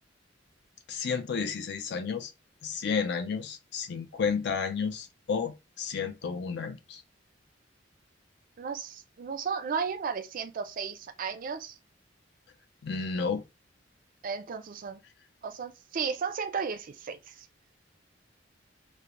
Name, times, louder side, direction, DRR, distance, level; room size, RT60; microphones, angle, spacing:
voice 1, 0.9-2.3 2.6-7.0 12.8-13.4, left 5 dB, 60° left, 0.4 m, -32 dB
voice 2, 8.6-11.7 14.2-15.0 15.4-17.5, right 6 dB, 45° right, 0.4 m, -34 dB
2.4 x 2.0 x 2.9 m
head